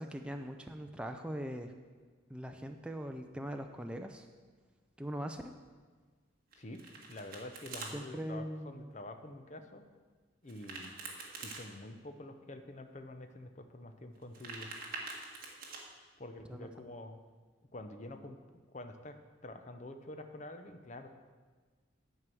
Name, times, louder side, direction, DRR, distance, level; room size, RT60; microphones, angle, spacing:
voice 1, 0.0-1.7 2.3-4.3 5.0-5.4 7.9-8.9 16.5-16.7, equal, 5° right, 4 dB, 0.4 m, -41 dB
Domestic sounds home sounds, 6.5-7.9 10.5-11.6 14.1-15.8, right 3 dB, 45° right, 1.6 m, -45 dB
voice 2, 7.1-9.8 10.4-11.0 11.4-14.7 16.2-17.2 17.7-18.4 18.7-19.2 19.4-21.1, left 1 dB, 35° left, 7 dB, 0.7 m, -47 dB
11.0 x 4.7 x 7.6 m, 1.5 s
head